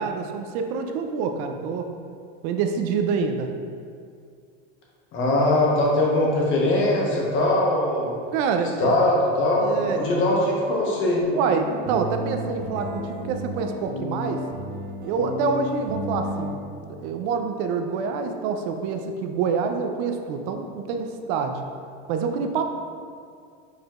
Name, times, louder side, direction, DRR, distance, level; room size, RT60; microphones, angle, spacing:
voice 1, 0.0-1.9 2.4-3.5 8.3-8.9 9.6-10.0 11.3-14.4 15.0-21.6 22.1-22.6, right 5 dB, 55° right, 5 dB, 0.5 m, -26 dB
voice 2, 5.1-8.1 8.8-11.2, left 1 dB, 40° left, -3 dB, 1.1 m, -21 dB
sound 1, 11.2-16.5, right 1 dB, 80° right, 0.9 m, -32 dB
4.9 x 4.4 x 2.4 m, 2.3 s
supercardioid pair, 140°, 32 cm